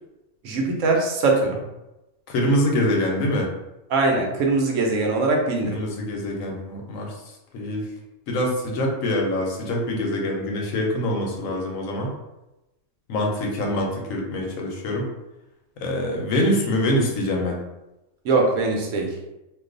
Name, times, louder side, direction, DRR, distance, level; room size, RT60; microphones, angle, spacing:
voice 1, 0.4-1.6 3.9-5.7 13.6-13.7 18.2-19.1, right 3 dB, 75° right, 1 dB, 1.0 m, -21 dB
voice 2, 2.3-3.5 5.6-7.1 7.5-7.8 8.3-12.1 13.1-15.0 15.8-17.6, left 1 dB, 85° left, 0 dB, 1.1 m, -24 dB
2.5 x 2.3 x 3.7 m, 0.96 s
omnidirectional pair, 1.4 m